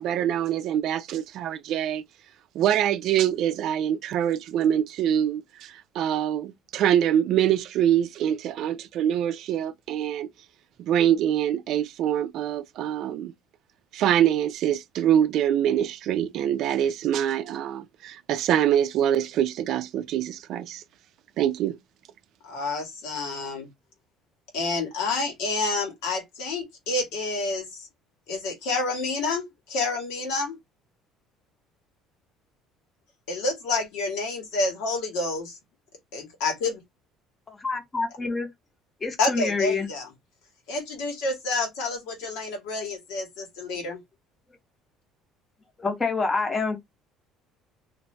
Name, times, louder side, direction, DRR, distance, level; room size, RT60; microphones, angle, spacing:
voice 1, 0.0-2.0 2.5-10.3 10.8-13.3 13.9-20.8 21.4-21.8, right 10 dB, 55° right, 0.4 m, -24 dB
voice 2, 22.4-23.7 24.5-27.9 28.3-30.5 33.3-35.6 36.1-36.8 39.2-40.1 40.7-44.0, left 3 dB, 85° left, 1.4 m, -29 dB
voice 3, 37.5-38.5 39.0-39.9 45.8-46.8, left 4 dB, 20° left, 0.8 m, -27 dB
2.6 x 2.6 x 3.2 m
cardioid pair, 150°, 0 cm